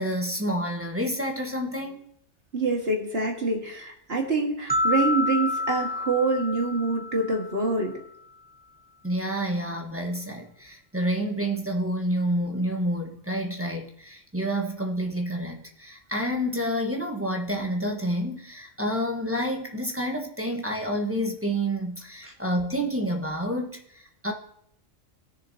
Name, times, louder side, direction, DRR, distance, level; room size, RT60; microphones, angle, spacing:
voice 1, 0.0-2.0 9.0-24.3, equal, 10° right, 1.1 m, -29 dB
voice 2, 2.5-7.9, right 3 dB, 55° right, 1.9 m, -26 dB
sound 1, 4.7-7.8, left 2 dB, 10° left, 0.9 m, -28 dB
19.0 x 6.9 x 2.8 m
omnidirectional pair, 1.3 m